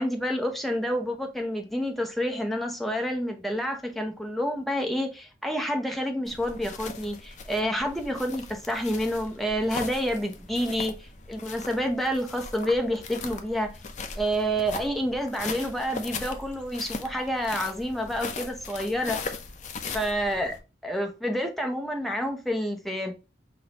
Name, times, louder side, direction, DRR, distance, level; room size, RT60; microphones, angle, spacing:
voice 1, 0.0-13.7 14.2-19.2 19.9-20.6 20.8-23.1, equal, ahead, 0.7 m, -28 dB
sound 1, 6.3-20.6, left 4 dB, 45° left, 0.5 m, -39 dB
5.9 x 2.6 x 2.9 m
head